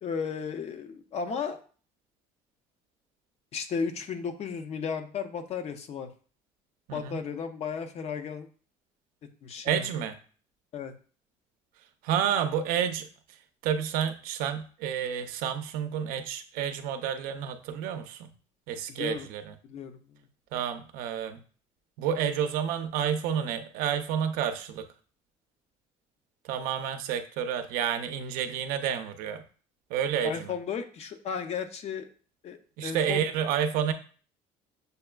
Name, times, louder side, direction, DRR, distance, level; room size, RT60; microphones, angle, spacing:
voice 1, 0.0-1.6 3.5-6.1 6.9-8.5 9.4-9.9 10.7-10.9 18.9-19.3 19.6-20.2 30.2-32.1 32.4-33.2, left 6 dB, 45° left, 8 dB, 0.5 m, -34 dB
voice 2, 6.9-7.2 9.6-10.2 12.0-13.4 13.6-18.3 18.7-19.5 20.5-21.4 22.0-24.9 26.4-29.4 29.9-30.6 32.8-33.9, right 8 dB, 80° right, 8 dB, 0.5 m, -30 dB
6.6 x 2.3 x 2.2 m, 0.41 s
cardioid pair, 110°, 15 cm